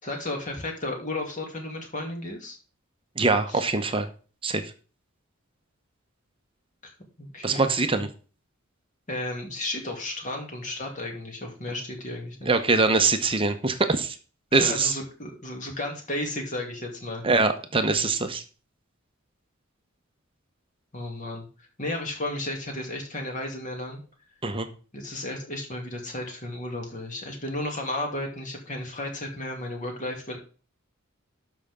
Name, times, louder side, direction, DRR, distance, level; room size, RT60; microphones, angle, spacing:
voice 1, 0.0-2.6 3.5-3.6 6.8-6.9 7.2-8.0 9.1-12.6 14.5-17.2 20.9-24.0 24.9-30.4, left 1 dB, 35° left, 2 dB, 2.7 m, -33 dB
voice 2, 3.2-4.1 4.4-4.7 7.4-8.1 12.5-14.2 14.5-14.9 17.2-18.4 24.4-24.7, right 3 dB, 25° right, 7 dB, 0.9 m, -23 dB
12.5 x 5.8 x 3.7 m, 0.37 s
head